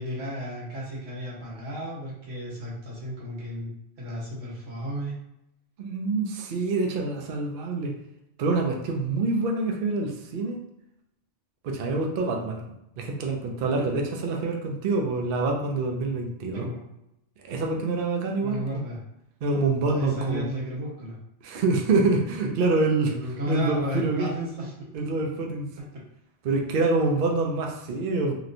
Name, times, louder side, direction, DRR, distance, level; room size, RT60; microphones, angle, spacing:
voice 1, 0.0-3.7 4.0-5.1 16.5-16.8 18.4-19.0 19.9-21.2 23.1-24.9, equal, 85° right, -5 dB, 1.4 m, -33 dB
voice 2, 5.8-8.0 8.4-10.6 11.6-12.6 13.0-16.7 17.4-18.8 19.4-20.4 21.4-23.1 23.5-24.3 24.9-25.7 26.4-28.3, right 3 dB, 60° right, 1 dB, 0.6 m, -26 dB
3.0 x 2.9 x 2.5 m, 0.84 s
omnidirectional pair, 1.2 m